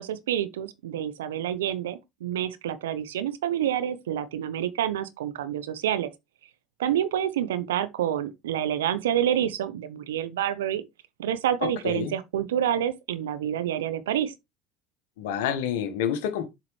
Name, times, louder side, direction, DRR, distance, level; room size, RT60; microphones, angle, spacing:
voice 1, 0.0-6.1 6.8-10.8 11.2-14.3, right 10 dB, 85° right, 0.8 m, -28 dB
voice 2, 11.6-12.1 15.2-16.5, left 9 dB, 75° left, 1.3 m, -28 dB
7.6 x 4.9 x 3.2 m
hypercardioid pair, 75°, 0 cm